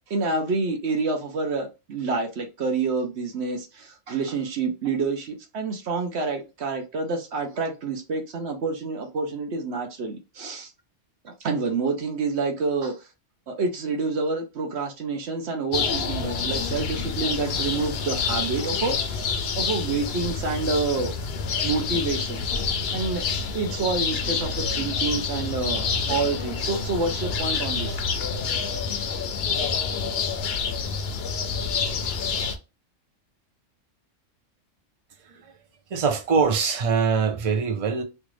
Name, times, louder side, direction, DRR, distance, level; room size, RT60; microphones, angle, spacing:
voice 1, 0.1-10.7 11.2-13.0 13.5-21.1 21.6-22.5 22.9-23.2 23.5-28.0, right 3 dB, 60° right, 1.0 m, -28 dB
sound 1, 15.7-32.6, left 5 dB, 60° left, 0.8 m, -28 dB
voice 2, 35.9-38.0, right 5 dB, 40° right, 0.5 m, -23 dB
3.3 x 2.5 x 3.1 m
omnidirectional pair, 1.3 m